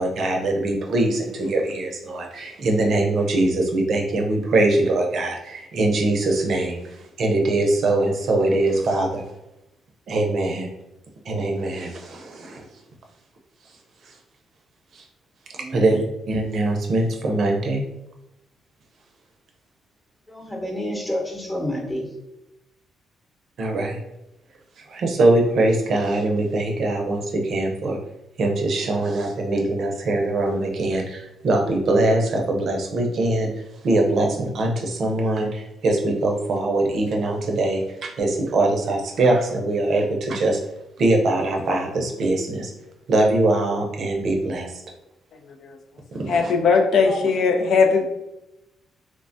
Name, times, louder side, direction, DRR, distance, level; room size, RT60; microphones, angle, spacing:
voice 1, 0.0-2.2 2.6-5.3 5.8-6.7 7.2-9.1 10.1-10.7 11.3-11.9 15.7-16.0 16.3-17.8 23.6-23.9 25.0-27.2 27.5-27.9 28.4-31.0 31.4-33.5 33.8-34.7 35.0-35.5 35.8-37.8 38.2-40.5 41.0-42.6 43.1-44.6, right 2 dB, 60° right, 2 dB, 0.5 m, -21 dB
voice 2, 20.3-22.1 46.9-47.2, equal, 15° left, -1 dB, 0.9 m, -29 dB
voice 3, 46.3-48.1, left 5 dB, 70° left, 4 dB, 0.4 m, -19 dB
3.2 x 2.1 x 2.5 m, 0.91 s
cardioid pair, 90°, 0 cm